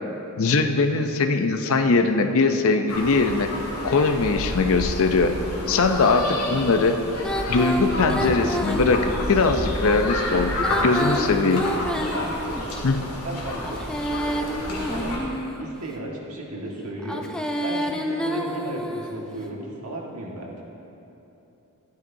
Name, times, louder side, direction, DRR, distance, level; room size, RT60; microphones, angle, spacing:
voice 1, 0.4-3.5 3.8-5.3 5.7-7.0 7.5-10.6 10.8-11.6 12.8-13.0, left 3 dB, 65° left, 7 dB, 0.6 m, -21 dB
sound 1, 2.9-15.2, left 1 dB, 85° left, 1.9 m, -30 dB
Female singing, 7.2-9.4 10.5-12.8 13.6-15.7 17.0-19.2, equal, 5° left, 0.4 m, -29 dB
voice 2, 12.1-12.8 13.2-15.2 15.6-17.2 17.6-20.6, right 1 dB, 75° right, -2 dB, 1.6 m, -35 dB
12.0 x 10.5 x 2.7 m, 2.9 s
head